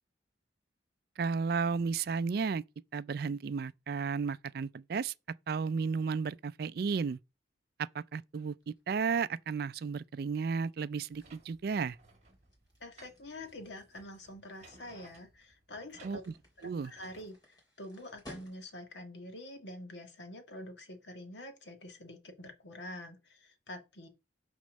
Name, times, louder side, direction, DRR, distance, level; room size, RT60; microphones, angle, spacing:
voice 1, 1.2-2.6 2.9-5.1 5.5-7.2 7.8-12.0 16.0-16.3 16.6-16.9, right 5 dB, 55° right, 0.3 m, -33 dB
sound 1, 8.6-19.0, left 1 dB, 20° left, 3.3 m, -59 dB
sound 2, 11.1-17.3, right 2 dB, 35° right, 1.7 m, -60 dB
voice 2, 12.8-16.2 16.6-24.1, left 1 dB, 75° left, 1.7 m, -46 dB
6.3 x 4.3 x 6.3 m
head